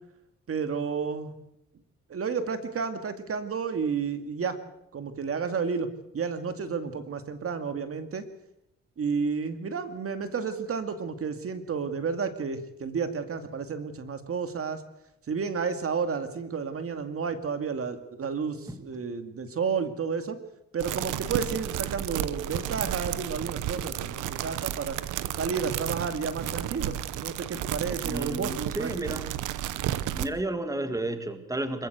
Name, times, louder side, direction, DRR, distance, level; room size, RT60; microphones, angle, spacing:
voice 1, 0.5-1.3 2.1-4.6 4.9-5.9 6.1-8.3 9.0-14.8 15.3-20.4 20.7-25.0 25.3-29.2, right 5 dB, 50° right, 9 dB, 2.3 m, -31 dB
voice 2, 18.7-19.0 27.7-29.3 30.1-31.9, right 1 dB, 10° right, 9 dB, 2.1 m, -33 dB
sound 1, 20.8-30.3, right 12 dB, 85° right, 1.1 m, -32 dB
25.0 x 15.0 x 8.1 m, 0.82 s
cardioid pair, 90°, 30 cm